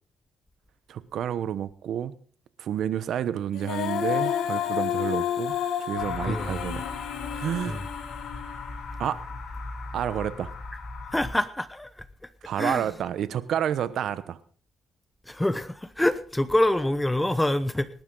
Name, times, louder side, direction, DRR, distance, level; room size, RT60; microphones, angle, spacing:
voice 1, 0.9-2.1 2.6-6.8 7.3-7.8 9.0-9.2 9.9-10.5 12.4-14.4, right 9 dB, 70° right, 14 dB, 1.0 m, -30 dB
Female singing, 3.5-8.7, left 10 dB, 80° left, 1.9 m, -30 dB
sound 1, 6.0-11.3, left 3 dB, 50° left, 7.4 m, -37 dB
voice 2, 11.1-12.0 12.6-12.9 15.3-17.9, left 1 dB, 10° left, 14 dB, 0.9 m, -26 dB
19.5 x 12.0 x 3.9 m, 0.43 s
cardioid pair, 90°, 0 cm